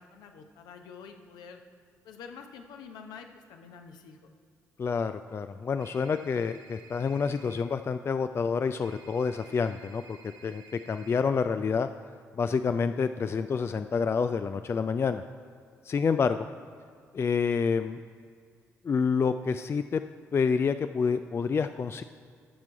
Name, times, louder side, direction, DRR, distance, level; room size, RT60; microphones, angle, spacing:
voice 1, 0.0-1.6 2.0-4.3, left 6 dB, 65° left, 5 dB, 0.9 m, -47 dB
voice 2, 4.8-10.2 10.4-10.6 10.9-11.9 12.3-15.2 15.8-16.5 17.1-18.0 18.8-20.0 20.3-22.0, left 5 dB, 35° left, 10 dB, 0.3 m, -28 dB
sound 1, 5.8-7.6 8.8-11.2, right 4 dB, 65° right, 1.1 m, -53 dB
13.5 x 6.0 x 4.5 m, 2.3 s
figure-of-eight pair, 40°, 8 cm